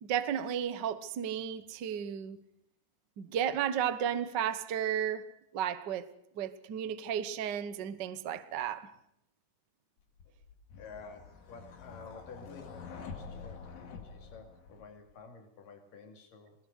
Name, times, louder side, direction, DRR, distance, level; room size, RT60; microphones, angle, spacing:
voice 1, 0.0-2.4 3.2-6.1 6.4-8.9, right 9 dB, 70° right, 1.0 m, -33 dB
sound 1, 10.2-15.1, left 5 dB, 60° left, 3.4 m, -47 dB
voice 2, 10.8-16.6, left 4 dB, 80° left, 4.2 m, -51 dB
21.5 x 20.0 x 6.5 m
omnidirectional pair, 3.8 m